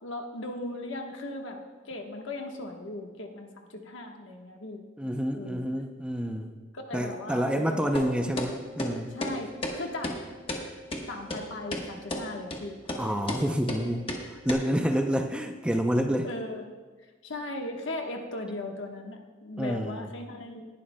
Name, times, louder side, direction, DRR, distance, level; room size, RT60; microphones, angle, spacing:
voice 1, 0.0-4.8 5.3-5.6 6.7-8.2 9.1-10.2 11.1-12.8 16.2-16.6 17.2-20.7, left 2 dB, 70° left, 2 dB, 1.3 m, -38 dB
voice 2, 5.0-6.5 6.9-9.2 13.0-14.1 14.4-16.3 19.6-20.1, equal, 5° right, 5 dB, 0.5 m, -28 dB
sound 1, 7.9-8.1 8.4-8.5 8.8-8.9 9.2-9.3 9.6-9.7 10.0-10.2 10.5-10.6 10.9-11.0 11.3-11.4 11.7-11.8 12.1-12.2 12.5-12.6 12.9-13.0 13.3-13.4 13.7-13.8 14.1-14.2 14.5-14.6, left 1 dB, 30° left, 1.2 m, -32 dB
19.0 x 11.5 x 2.2 m, 1.4 s
head